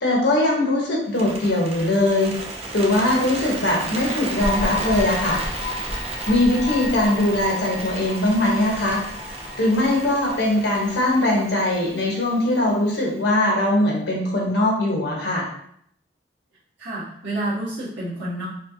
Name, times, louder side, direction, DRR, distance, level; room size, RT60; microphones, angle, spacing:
voice 1, 0.0-2.3 2.7-5.4 6.3-9.0 9.6-15.5, left 1 dB, 70° left, -2 dB, 1.1 m, -21 dB
Bird, 1.1-13.3, right 2 dB, 35° right, 0.5 m, -34 dB
sound 1, 4.3-11.1, left 2 dB, 45° left, 1.2 m, -32 dB
voice 2, 16.8-18.5, right 1 dB, 85° right, -8 dB, 1.5 m, -29 dB
4.2 x 2.3 x 2.8 m, 0.69 s
head